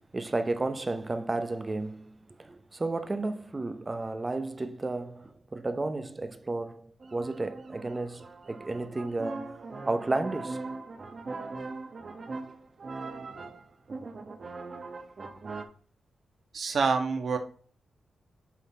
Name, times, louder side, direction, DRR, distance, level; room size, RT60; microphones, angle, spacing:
voice 1, 0.1-10.7, right 2 dB, 20° right, 0.6 m, -33 dB
sound 1, 7.0-15.6, right 3 dB, 40° right, 0.9 m, -40 dB
voice 2, 16.5-17.4, right 5 dB, 55° right, 1.3 m, -26 dB
8.2 x 4.1 x 4.2 m
wide cardioid pair, 120°, 0 cm